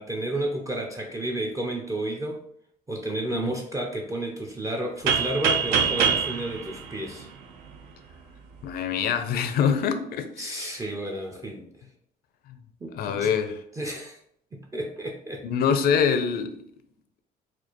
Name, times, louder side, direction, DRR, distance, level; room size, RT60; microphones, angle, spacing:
voice 1, 0.0-2.4 2.9-7.3 10.4-11.7 12.8-13.3 13.8-14.2 14.5-15.4, right 1 dB, 20° right, 0.5 m, -31 dB
sound 1, 5.1-7.8, right 7 dB, 80° right, 0.6 m, -25 dB
voice 2, 8.6-10.8 12.9-13.6 15.4-16.5, left 7 dB, 65° left, 0.5 m, -25 dB
4.3 x 2.4 x 2.9 m
cardioid pair, 110°, 17 cm